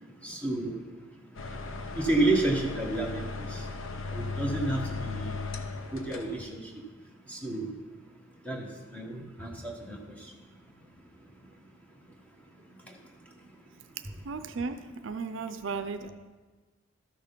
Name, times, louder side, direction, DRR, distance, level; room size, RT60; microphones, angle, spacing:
voice 1, 0.2-0.7 1.9-3.6 4.1-5.4 5.9-6.6 7.3-7.7 8.4-10.0, right 2 dB, 5° left, 0 dB, 1.3 m, -30 dB
sound 1, 1.3-6.4, left 3 dB, 75° left, 0.8 m, -36 dB
voice 2, 14.2-16.1, right 4 dB, 65° right, 9 dB, 0.5 m, -35 dB
12.5 x 6.5 x 5.3 m, 1.3 s
head